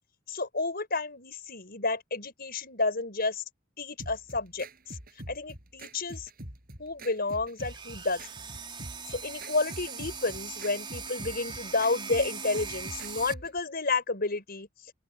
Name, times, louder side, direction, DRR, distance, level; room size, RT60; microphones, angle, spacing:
voice 1, 0.3-3.4 3.8-4.7 5.3-6.3 6.8-8.2 9.1-14.7, left 3 dB, 50° left, 5.6 m, -31 dB
sound 1, 4.0-13.6, right 1 dB, 45° right, 7.9 m, -45 dB
sound 2, 7.6-13.3, right 5 dB, 25° right, 4.5 m, -40 dB
open air
head